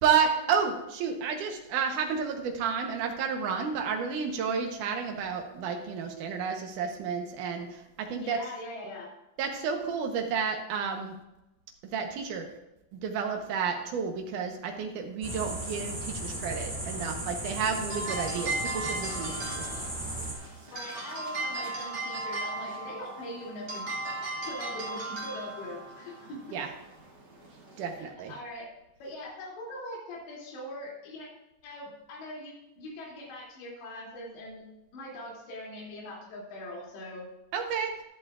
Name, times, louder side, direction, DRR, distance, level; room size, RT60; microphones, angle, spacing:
voice 1, 0.0-8.4 9.4-11.1 11.9-12.4 13.0-19.9 26.5-26.7 27.8-28.3 37.5-37.9, right 6 dB, 80° right, 3 dB, 1.8 m, -31 dB
voice 2, 8.1-9.1 20.7-23.8 24.5-26.6 28.0-28.7 29.0-31.3 31.6-34.6 34.9-37.3, left 1 dB, 75° left, -3 dB, 5.1 m, -41 dB
sound 1, 15.2-20.3, right 1 dB, 5° right, 2.8 m, -36 dB
sound 2, 17.6-28.0, right 2 dB, 35° right, 2.5 m, -37 dB
15.5 x 11.5 x 2.5 m, 0.94 s
omnidirectional pair, 5.2 m